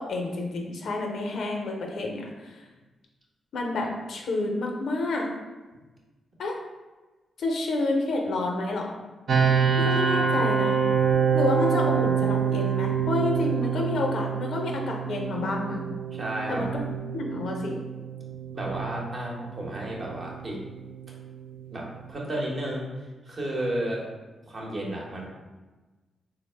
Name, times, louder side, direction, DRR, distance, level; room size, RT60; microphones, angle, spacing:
voice 1, 0.0-2.3 3.5-5.3 6.4-6.6 7.4-9.0 9.8-10.8 11.3-15.8 16.5-16.8 17.1-17.8, left 2 dB, 75° left, 1 dB, 0.5 m, -29 dB
sound 1, 9.3-22.1, right 6 dB, 65° right, 0.4 m, -27 dB
voice 2, 16.1-16.7 18.5-20.6 21.7-22.9 23.2-24.1 24.5-25.3, right 1 dB, 45° right, -2 dB, 0.9 m, -32 dB
3.5 x 2.0 x 3.2 m, 1.2 s
cardioid pair, 75°, 0 cm